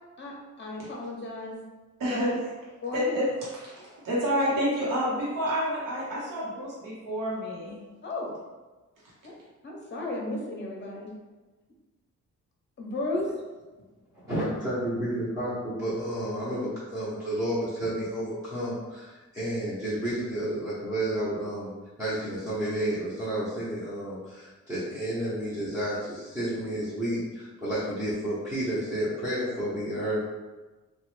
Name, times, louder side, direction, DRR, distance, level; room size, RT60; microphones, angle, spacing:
voice 1, 0.2-1.6 2.1-2.2 2.8-3.1 8.0-8.3 9.2-9.3 9.6-11.1 12.8-13.3, left 2 dB, 35° left, -2 dB, 0.7 m, -34 dB
voice 2, 2.0-7.8 9.0-9.1, equal, 80° right, -7 dB, 0.9 m, -29 dB
voice 3, 14.1-21.7 22.0-30.2, right 1 dB, 10° right, -12 dB, 0.7 m, -31 dB
3.0 x 2.2 x 3.1 m, 1.2 s
wide cardioid pair, 145°, 31 cm